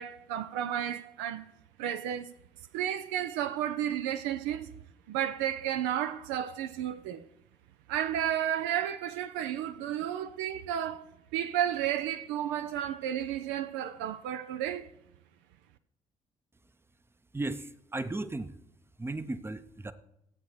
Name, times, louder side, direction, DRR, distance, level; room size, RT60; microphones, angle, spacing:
voice 1, 0.0-1.5 1.8-2.3 2.7-4.7 5.1-7.2 7.9-11.0 11.3-14.9, right 10 dB, 70° right, 0.5 m, -32 dB
voice 2, 17.3-18.5 19.0-19.9, right 2 dB, 10° right, 0.7 m, -35 dB
14.0 x 8.2 x 3.1 m
figure-of-eight pair, 45°, 19 cm